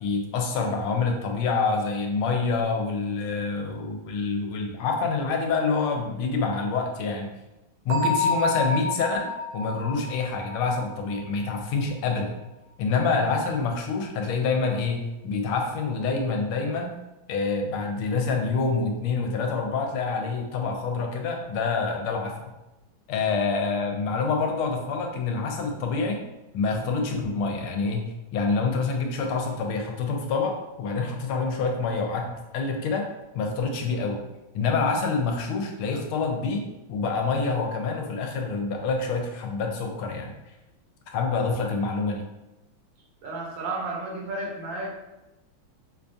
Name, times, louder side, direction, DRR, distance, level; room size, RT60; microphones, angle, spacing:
voice 1, 0.0-7.3 7.8-9.3 9.5-12.3 12.8-16.9 17.3-22.5 23.1-26.2 26.5-33.1 33.3-34.2 34.5-40.3 41.1-42.2, left 4 dB, 80° left, 3 dB, 1.4 m, -27 dB
Bell, 7.9-11.6, left 2 dB, 85° right, 1.7 m, -29 dB
voice 2, 43.2-44.9, right 2 dB, 70° right, -1 dB, 1.3 m, -32 dB
5.0 x 2.3 x 2.6 m, 0.99 s
omnidirectional pair, 2.3 m